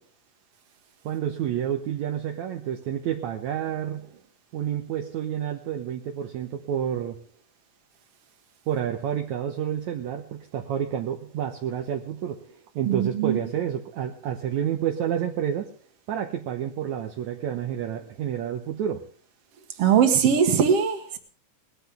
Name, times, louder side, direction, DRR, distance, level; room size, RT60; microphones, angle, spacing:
voice 1, 1.0-4.1 4.5-7.2 8.7-12.4 12.8-15.7 16.1-19.0, right 9 dB, 70° right, 2.2 m, -29 dB
voice 2, 12.9-13.4 19.8-21.2, right 7 dB, 50° right, 2.5 m, -21 dB
20.5 x 14.0 x 3.5 m
omnidirectional pair, 3.7 m